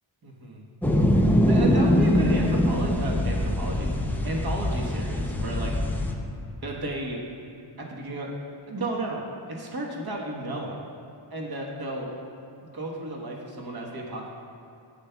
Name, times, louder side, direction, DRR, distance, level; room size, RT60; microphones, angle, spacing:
voice 1, 0.2-0.6 1.5-3.9 4.2-5.7 6.6-7.2 7.8-8.3 8.7-9.2 9.5-10.8 11.3-14.3, right 1 dB, 45° right, -1 dB, 1.3 m, -33 dB
sound 1, 0.8-6.1, equal, 5° left, 0.5 m, -23 dB
10.5 x 7.3 x 2.3 m, 2.7 s
wide cardioid pair, 90°, 50 cm